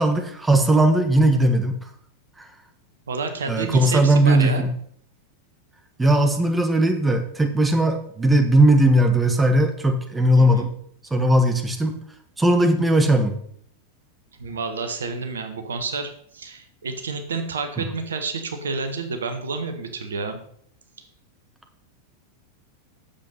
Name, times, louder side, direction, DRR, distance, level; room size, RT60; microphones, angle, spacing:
voice 1, 0.0-1.8 2.4-2.5 3.5-4.7 6.0-10.7 11.1-12.0 12.4-13.3, right 1 dB, 10° right, 6 dB, 1.3 m, -18 dB
voice 2, 3.1-4.7 10.3-10.7 14.4-20.4, right 4 dB, 70° right, 7 dB, 1.4 m, -29 dB
8.8 x 7.4 x 5.6 m, 0.62 s
figure-of-eight pair, 90°, 0 cm